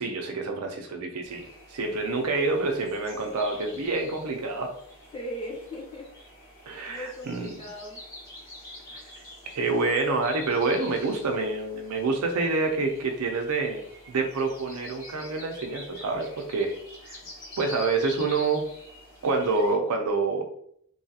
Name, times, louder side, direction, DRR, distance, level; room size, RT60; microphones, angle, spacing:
voice 1, 0.0-4.7 6.7-7.6 8.9-9.0 9.5-13.8 14.1-16.8 17.0-17.2 17.6-18.7 19.2-20.4, right 3 dB, 85° right, 4 dB, 0.5 m, -27 dB
sound 1, 1.2-19.7, left 1 dB, 45° left, 1.1 m, -46 dB
voice 2, 5.1-6.1 6.6-8.0, equal, 25° left, -4 dB, 0.9 m, -38 dB
2.7 x 2.3 x 2.7 m, 0.68 s
head